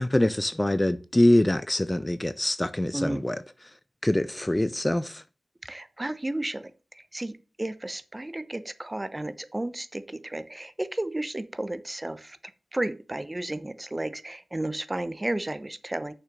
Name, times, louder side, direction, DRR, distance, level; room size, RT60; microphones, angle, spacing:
voice 1, 0.0-3.4 4.0-5.2, left 1 dB, 20° left, 0.6 m, -24 dB
voice 2, 5.6-12.4 12.7-16.1, right 1 dB, 25° right, 1.0 m, -33 dB
6.6 x 6.1 x 6.7 m
cardioid pair, 50°, 0 cm